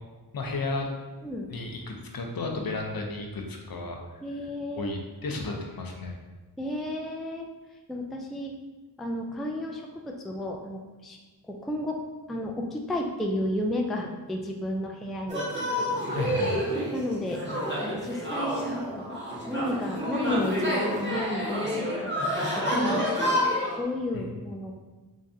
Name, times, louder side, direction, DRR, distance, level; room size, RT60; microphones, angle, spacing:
voice 1, 0.3-0.9 1.5-4.0 4.8-6.1 16.1-16.6 24.1-24.3, left 3 dB, 60° left, 2 dB, 0.7 m, -33 dB
voice 2, 4.2-5.0 6.6-7.5 7.9-8.5 9.0-11.2 11.5-12.0 12.3-15.5 16.9-17.4 17.8-19.2 19.5-23.4 23.8-24.8, left 1 dB, ahead, 1 dB, 0.3 m, -32 dB
sound 1, 15.3-23.8, equal, 25° right, 1.4 m, -29 dB
3.5 x 3.1 x 2.7 m, 1.2 s
cardioid pair, 45°, 41 cm